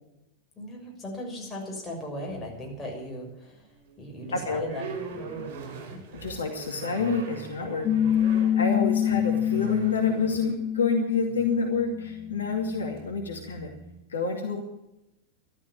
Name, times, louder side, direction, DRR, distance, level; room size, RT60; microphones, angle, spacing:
voice 1, 0.6-3.7 4.0-4.9 5.2-6.0, left 1 dB, 15° left, -1 dB, 6.5 m, -38 dB
sound 1, 2.3-3.0 3.4-14.0, right 5 dB, 45° right, 5.2 m, -42 dB
voice 2, 4.3-4.6 6.2-13.7 14.1-14.6, left 4 dB, 70° left, 2 dB, 2.4 m, -28 dB
Piano, 7.8-13.0, left 10 dB, 30° left, 1.9 m, -27 dB
13.0 x 13.0 x 7.5 m, 0.90 s
figure-of-eight pair, 90°, 0 cm